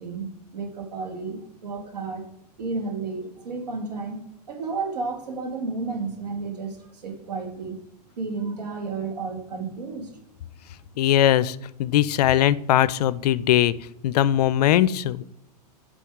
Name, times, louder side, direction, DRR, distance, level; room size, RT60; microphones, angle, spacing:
voice 1, 0.0-2.3 2.6-4.2 4.5-6.8 7.0-7.8 8.2-10.1, right 4 dB, 85° right, 3 dB, 1.9 m, -32 dB
voice 2, 11.0-13.7 14.0-15.2, left 12 dB, 75° left, 18 dB, 0.4 m, -20 dB
8.3 x 5.1 x 3.6 m, 0.82 s
hypercardioid pair, 115°, 21 cm